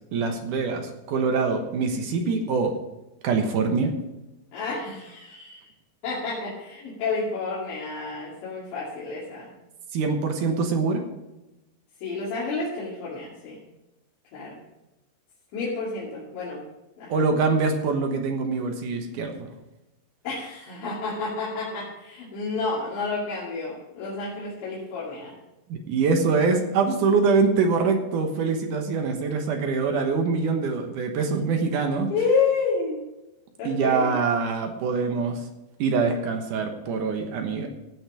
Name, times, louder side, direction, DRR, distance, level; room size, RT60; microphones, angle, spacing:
voice 1, 0.1-2.7 3.2-3.9 9.9-11.0 17.1-19.5 25.7-32.1 33.6-35.4 35.8-37.7, right 4 dB, 65° right, 4 dB, 2.1 m, -24 dB
voice 2, 4.5-5.6 6.0-9.5 12.0-13.6 14.3-14.6 15.5-16.6 17.0-17.3 20.2-25.3 31.5-31.6 32.1-33.0 33.6-34.2, left 4 dB, 90° left, -8 dB, 4.9 m, -30 dB
16.5 x 6.3 x 4.9 m, 0.97 s
omnidirectional pair, 5.0 m